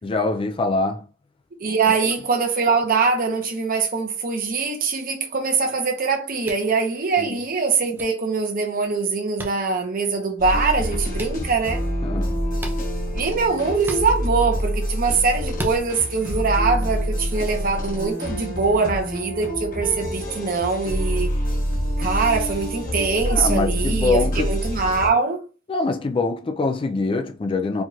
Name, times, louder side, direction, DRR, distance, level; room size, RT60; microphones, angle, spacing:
voice 1, 0.0-1.0 2.0-2.1 7.2-7.4 12.0-12.4 23.3-24.5 25.7-27.8, left 3 dB, 25° left, 0.4 m, -24 dB
voice 2, 1.6-11.8 13.1-21.3 22.0-25.4, right 4 dB, 45° right, 0.9 m, -23 dB
sound 1, 6.4-6.7 7.9-8.0 9.4-9.5 11.1-11.3 12.6-12.8 13.8-14.0 15.5-15.8, right 1 dB, 10° right, 0.6 m, -32 dB
sound 2, 10.4-25.1, equal, 45° left, 1.3 m, -26 dB
4.5 x 2.9 x 2.4 m
head